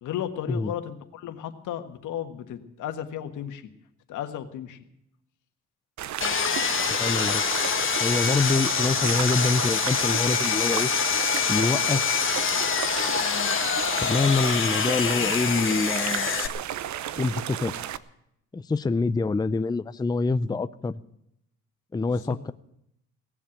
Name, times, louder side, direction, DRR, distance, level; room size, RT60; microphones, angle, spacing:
voice 1, 0.0-3.7 4.1-4.8 22.0-22.4, left 10 dB, 80° left, 8 dB, 1.6 m, -34 dB
sound 1, 6.0-18.0, right 11 dB, 65° right, 0.8 m, -33 dB
Sawing, 6.2-16.5, left 7 dB, 40° left, 1.6 m, -25 dB
voice 2, 7.0-7.4 8.0-10.9 11.5-12.1 14.0-16.4 17.2-17.7 18.5-21.0 21.9-22.5, left 3 dB, 15° left, 13 dB, 0.5 m, -26 dB
18.0 x 7.4 x 9.8 m, 0.78 s
cardioid pair, 90°, 30 cm